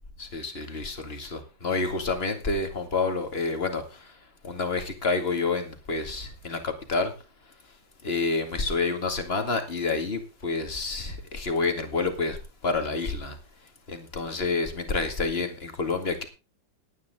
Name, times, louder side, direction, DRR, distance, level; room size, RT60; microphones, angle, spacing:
voice 1, 0.2-4.1 4.4-7.1 8.0-13.4 13.9-16.3, left 3 dB, 30° left, 6 dB, 2.4 m, -28 dB
18.0 x 9.7 x 3.7 m, 0.31 s
omnidirectional pair, 2.0 m